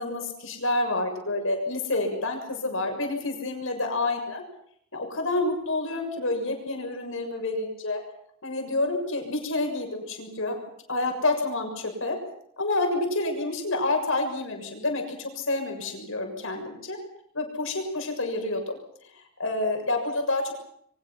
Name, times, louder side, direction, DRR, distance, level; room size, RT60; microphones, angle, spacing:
voice 1, 0.0-4.4 4.9-8.0 8.4-10.5 10.9-12.2 12.6-17.0 17.3-18.8 19.1-20.5, left 2 dB, 65° left, 4 dB, 6.8 m, -28 dB
28.0 x 24.0 x 5.9 m, 0.69 s
head